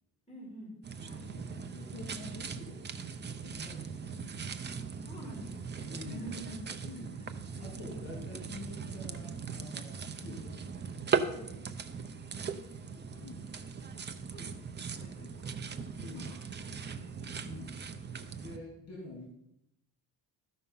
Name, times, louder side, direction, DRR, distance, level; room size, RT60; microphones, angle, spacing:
voice 1, 0.3-1.4 5.0-7.7 12.2-13.4 14.3-15.6 15.9-17.2, equal, 15° left, -2 dB, 3.7 m, -50 dB
sound 1, 0.8-18.6, right 6 dB, 30° right, 0.5 m, -39 dB
voice 2, 0.9-4.3 5.8-6.3 6.8-7.2 7.6-10.8 11.1-11.9 13.2-13.6 15.2-15.3 15.9-16.4 17.2-19.3, left 3 dB, 45° left, -3 dB, 2.8 m, -48 dB
13.0 x 5.7 x 5.5 m, 0.81 s
cardioid pair, 155°, 37 cm